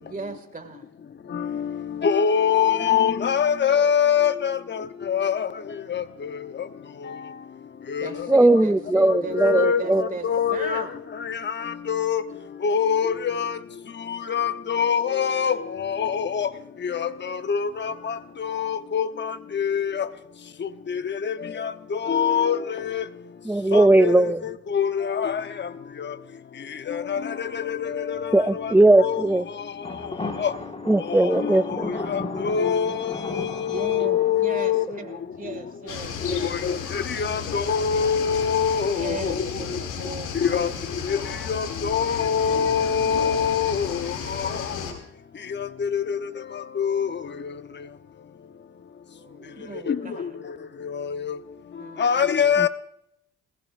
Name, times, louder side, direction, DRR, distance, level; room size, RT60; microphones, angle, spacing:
voice 1, 0.0-0.9 8.0-11.0 33.6-36.5 38.9-40.7 49.1-50.4 51.8-52.5, right 3 dB, 25° right, 2.2 m, -37 dB
voice 2, 2.0-4.6 5.1-5.3 8.0-8.1 9.4-9.8 10.2-10.8 11.9-12.2 12.6-13.5 14.3-15.6 15.8-16.5 17.0-17.1 17.5-17.7 18.5-19.1 19.6-19.8 22.1-22.6 22.9-23.0 23.7-24.1 24.7-24.9 25.2-25.3 26.9-27.2 27.7-28.2 29.0-29.2 32.1-32.2 32.4-34.8 36.6-36.7 37.3-39.2 40.4-40.7 41.5-43.8 45.9-46.0 46.8-47.1 49.9-50.0 52.0-52.7, left 7 dB, 35° left, 0.9 m, -23 dB
voice 3, 8.3-10.0 23.5-24.4 28.3-29.4 30.9-32.0, right 2 dB, 5° right, 0.4 m, -18 dB
sound 1, 29.8-35.2, left 2 dB, 20° left, 1.8 m, -35 dB
sound 2, 35.9-44.9, left 6 dB, 85° left, 2.7 m, -33 dB
20.0 x 16.0 x 2.6 m
cardioid pair, 90°, 30 cm